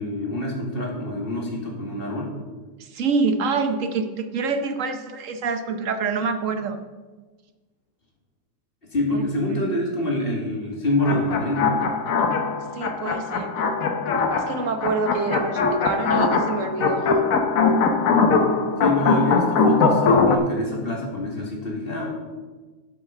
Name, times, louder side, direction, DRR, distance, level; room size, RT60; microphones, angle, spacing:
voice 1, 0.0-2.4 8.9-11.8 18.8-22.1, left 1 dB, 35° left, -1 dB, 2.2 m, -26 dB
voice 2, 2.8-6.8 9.1-9.2 9.5-9.6 12.7-13.7 14.3-17.1, right 4 dB, 55° right, 8 dB, 1.1 m, -26 dB
sound 1, 11.0-20.4, left 4 dB, 60° left, 1.2 m, -21 dB
8.0 x 7.0 x 6.7 m, 1.3 s
omnidirectional pair, 1.8 m